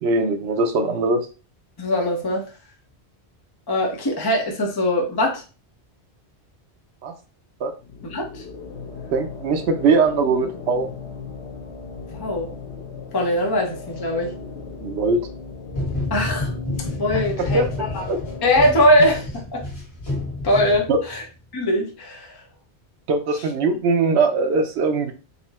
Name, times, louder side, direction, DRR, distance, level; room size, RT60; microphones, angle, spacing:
voice 1, 0.0-1.3 7.0-7.1 7.6-7.7 9.1-10.9 14.8-15.3 17.4-18.2 20.9-21.0 23.1-25.1, right 3 dB, 75° right, 6 dB, 0.9 m, -21 dB
voice 2, 1.8-2.5 3.7-5.4 8.0-8.4 12.2-12.5 13.1-14.3 16.1-16.5 17.0-17.6 17.9-18.0 18.4-19.6 20.4-21.2 21.5-22.4, left 1 dB, 25° left, 1 dB, 0.7 m, -21 dB
sound 1, 7.8-19.3, left 4 dB, 85° left, 1.2 m, -37 dB
sound 2, 15.7-21.2, left 2 dB, 70° left, 1.8 m, -30 dB
4.2 x 2.0 x 4.1 m, 0.33 s
omnidirectional pair, 1.1 m